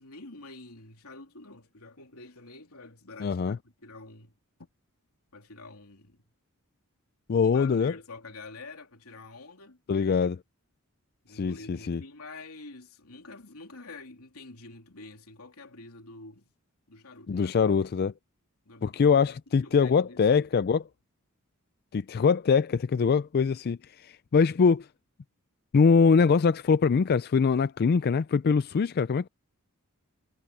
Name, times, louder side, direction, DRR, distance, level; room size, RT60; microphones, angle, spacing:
voice 1, 0.0-4.3 4.6-4.7 5.3-6.2 7.4-9.8 11.2-16.5 16.9-18.0 18.6-19.3 19.6-20.5 22.1-22.3, left 3 dB, 90° left, 3.2 m, -47 dB
voice 2, 3.2-3.6 7.3-7.9 9.9-10.4 11.3-12.0 17.3-18.1 18.8-20.8 21.9-24.9 25.7-29.3, left 5 dB, 45° left, 0.4 m, -23 dB
head